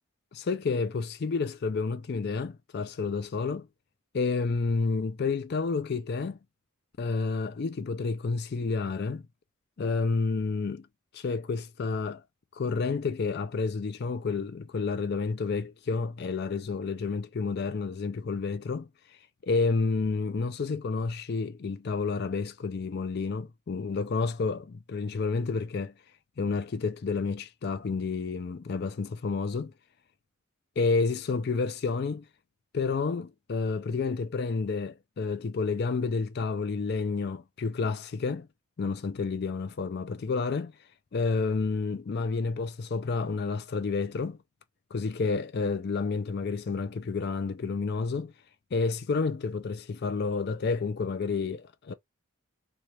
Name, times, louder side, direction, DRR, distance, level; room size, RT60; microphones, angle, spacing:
voice 1, 0.3-3.7 4.1-6.4 7.0-9.2 9.8-10.9 11.1-12.2 12.5-18.9 19.4-25.9 26.4-29.7 30.8-32.2 32.7-38.5 38.8-40.7 41.1-44.4 44.9-48.3 48.7-51.9, left 4 dB, 45° left, 0.4 m, -30 dB
3.1 x 2.4 x 4.1 m
head